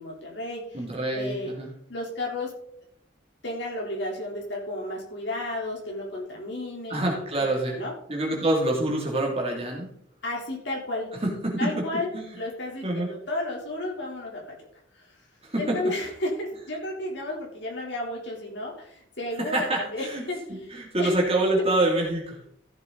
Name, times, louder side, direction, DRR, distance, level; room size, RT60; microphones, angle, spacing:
voice 1, 0.0-0.8 1.1-1.5 1.9-2.5 3.4-7.9 10.2-11.1 11.6-12.1 12.4-14.6 14.9-15.1 15.6-20.7 21.0-21.1, left 1 dB, 60° left, -2 dB, 3.6 m, -33 dB
voice 2, 0.7-1.7 6.9-7.8 8.1-9.9 11.2-11.8 12.1-12.3 12.8-13.1 15.4-15.9 19.5-20.2 20.5-22.4, right 1 dB, 30° right, -1 dB, 2.7 m, -26 dB
14.5 x 7.4 x 4.0 m, 0.67 s
head